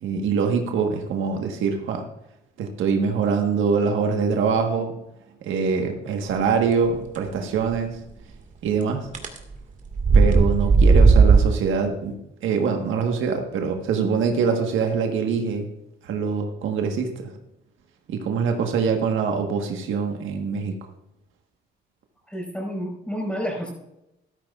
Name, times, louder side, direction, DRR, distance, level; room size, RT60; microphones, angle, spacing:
voice 1, 0.0-2.1 2.6-4.9 5.4-7.9 8.6-9.1 10.1-15.7 16.0-17.3 18.1-20.8, right 5 dB, 80° right, 4 dB, 1.4 m, -24 dB
sound 1, 7.7-7.8 9.1-9.4 9.9-11.4, right 4 dB, 40° right, 1.9 m, -15 dB
voice 2, 22.3-23.7, equal, 5° left, 1 dB, 4.8 m, -30 dB
13.5 x 12.0 x 2.4 m, 0.84 s
cardioid pair, 90°, 20 cm